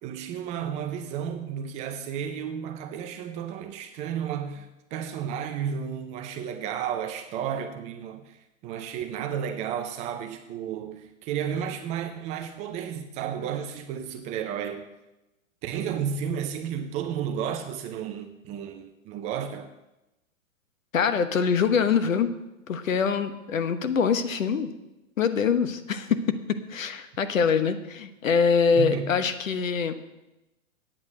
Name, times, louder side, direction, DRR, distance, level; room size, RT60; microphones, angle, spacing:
voice 1, 0.0-14.8 15.6-19.7 28.8-29.2, right 8 dB, 20° right, 0.4 m, -32 dB
voice 2, 20.9-22.3 22.7-24.7 25.2-29.9, left 6 dB, 75° left, 1.2 m, -24 dB
8.7 x 8.7 x 6.6 m
hypercardioid pair, 125°, 40 cm